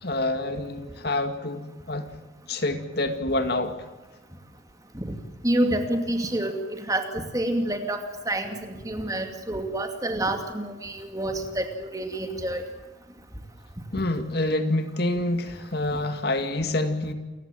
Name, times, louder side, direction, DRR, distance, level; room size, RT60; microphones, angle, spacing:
voice 1, 0.0-2.1 2.5-3.8 13.9-17.1, left 2 dB, 55° left, 8 dB, 2.1 m, -27 dB
voice 2, 5.4-12.6 13.9-14.0, right 1 dB, 15° right, 5 dB, 2.5 m, -28 dB
29.0 x 15.5 x 9.1 m, 1.2 s
head